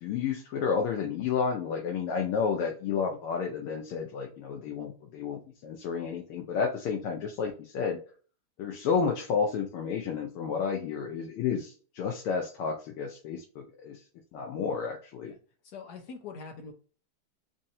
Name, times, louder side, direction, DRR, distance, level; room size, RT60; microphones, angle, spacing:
voice 1, 0.0-8.0 8.6-14.0 14.3-15.3, left 6 dB, 85° left, 1 dB, 1.6 m, -31 dB
voice 2, 15.7-16.7, left 5 dB, 65° left, 3 dB, 1.0 m, -42 dB
4.4 x 2.7 x 2.6 m, 0.39 s
omnidirectional pair, 2.4 m